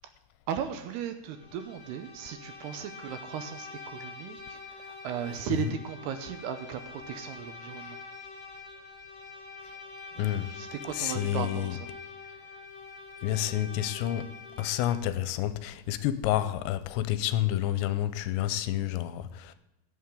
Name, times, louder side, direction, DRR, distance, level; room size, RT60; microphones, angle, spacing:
voice 1, 0.5-8.0 10.2-11.9, right 9 dB, 80° right, 2.6 m, -37 dB
Bowed string instrument, 1.3-15.2, left 4 dB, 35° left, 4.1 m, -45 dB
voice 2, 10.2-10.5 10.9-11.7 13.2-19.5, left 12 dB, 90° left, 2.9 m, -29 dB
17.0 x 8.6 x 3.8 m
omnidirectional pair, 5.2 m